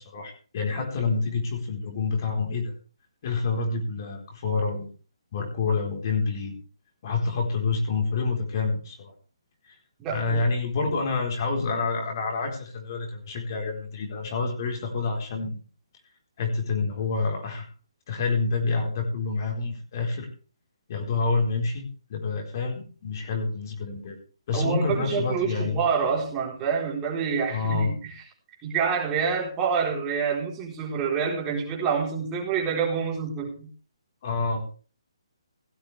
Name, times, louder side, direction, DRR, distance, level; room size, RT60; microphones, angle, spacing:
voice 1, 0.0-2.7 3.2-4.9 5.3-6.6 7.0-9.1 9.6-9.7 10.1-15.6 16.4-17.7 18.1-20.3 20.9-24.2 24.5-25.9 27.5-27.9 34.2-34.7, left 4 dB, 35° left, 2 dB, 4.3 m, -28 dB
voice 2, 10.0-10.4 24.5-28.1 28.6-33.7, right 6 dB, 15° right, -1 dB, 4.2 m, -27 dB
16.5 x 12.0 x 3.4 m, 0.37 s
hypercardioid pair, 165°, 3 cm